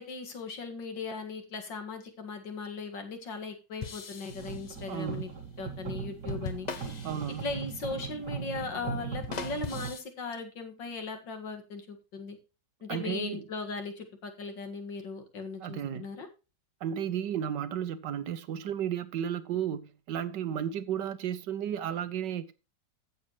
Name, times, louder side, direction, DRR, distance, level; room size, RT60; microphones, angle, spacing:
voice 1, 0.0-5.3 5.6-6.7 7.4-12.4 12.8-16.3, left 4 dB, 90° left, 2.6 m, -38 dB
sound 1, 3.8-5.1 6.3-7.9 9.1-10.0, left 5 dB, 55° left, 0.4 m, -41 dB
sound 2, 4.3-9.9, right 6 dB, 65° right, 2.6 m, -39 dB
voice 2, 4.9-5.3 7.0-7.5 12.9-13.4 15.6-16.1 16.8-22.5, right 9 dB, 80° right, 1.6 m, -33 dB
15.0 x 7.0 x 3.1 m
omnidirectional pair, 1.9 m